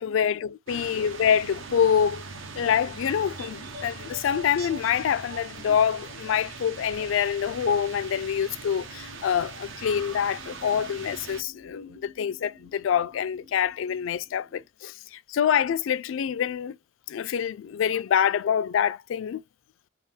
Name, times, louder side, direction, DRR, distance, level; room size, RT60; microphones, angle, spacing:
voice 1, 0.0-2.2 2.5-16.8 17.1-19.4, left 8 dB, 70° left, 0.3 m, -26 dB
sound 1, 0.7-11.4, right 4 dB, 70° right, 0.8 m, -41 dB
sound 2, 3.0-7.7 7.9-8.9 9.1-9.2, right 1 dB, 50° right, 1.1 m, -47 dB
sound 3, 9.7-14.7, left 3 dB, 30° right, 0.6 m, -53 dB
3.5 x 2.9 x 3.2 m
head